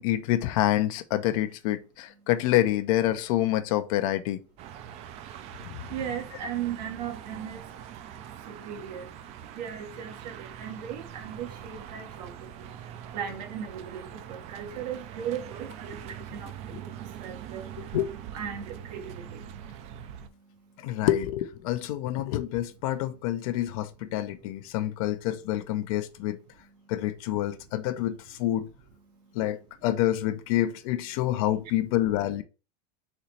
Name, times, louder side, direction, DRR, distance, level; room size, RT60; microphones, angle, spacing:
voice 1, 0.0-4.4 16.7-16.8 17.8-18.1 20.8-26.4 26.9-28.7 29.3-32.4, left 13 dB, 60° left, 0.5 m, -27 dB
sound 1, 4.6-20.3, right 10 dB, 30° right, 0.4 m, -43 dB
voice 2, 5.9-7.6 8.5-9.1 9.5-12.7 13.1-17.7 18.3-19.4, right 8 dB, 80° right, 1.2 m, -37 dB
4.2 x 3.0 x 4.2 m
supercardioid pair, 155°, 21 cm